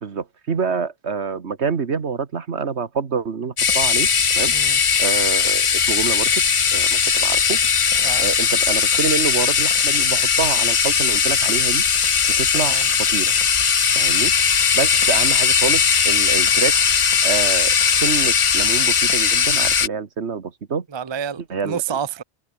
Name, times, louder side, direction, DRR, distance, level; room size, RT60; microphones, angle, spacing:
voice 1, 0.0-4.5 5.0-6.4 6.7-7.6 8.2-11.9 12.4-12.8 13.1-13.3 13.9-14.3 14.7-16.8 17.2-20.9 21.5-22.0, right 5 dB, 75° right, 1.8 m, -26 dB
sound 1, 3.6-19.9, left 6 dB, 35° left, 0.5 m, -18 dB
voice 2, 12.5-12.9 20.9-22.2, right 7 dB, 30° right, 0.7 m, -29 dB
omnidirectional pair, 1.2 m